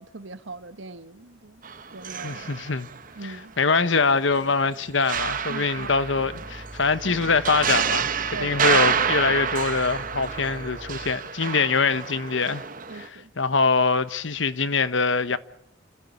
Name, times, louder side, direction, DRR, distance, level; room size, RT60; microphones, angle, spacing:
voice 1, 0.0-1.6 1.9-2.5 3.1-3.5 5.5-5.9 8.3-8.8 11.4-11.6 12.9-13.3, right 3 dB, 70° right, 1.3 m, -40 dB
sound 1, 1.6-3.3 3.7-13.1, right 7 dB, 45° right, 1.1 m, -28 dB
voice 2, 2.2-2.9 3.2-12.6 12.9-15.4, left 4 dB, 70° left, 1.1 m, -24 dB
sound 2, 5.1-11.3, equal, 5° left, 3.8 m, -43 dB
29.5 x 15.5 x 8.4 m
head